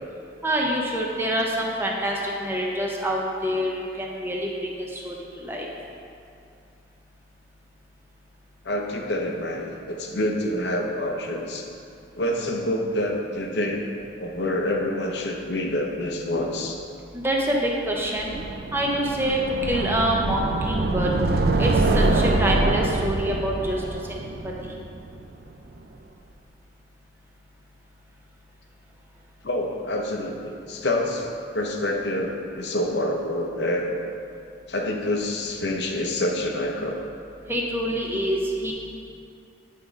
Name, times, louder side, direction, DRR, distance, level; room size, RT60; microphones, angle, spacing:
voice 1, 0.4-5.1 5.4-5.7 17.1-18.4 18.7-19.4 19.7-20.4 20.7-21.1 21.6-23.8 37.5-38.7, right 1 dB, 10° right, -2 dB, 0.7 m, -26 dB
voice 2, 8.6-11.7 12.2-13.8 14.2-16.8 29.4-31.3 31.5-33.9 34.7-36.9, left 1 dB, 70° left, 2 dB, 0.8 m, -27 dB
sound 1, 18.1-25.2, right 2 dB, 55° right, 0.4 m, -24 dB
7.9 x 3.7 x 5.1 m, 2.6 s
head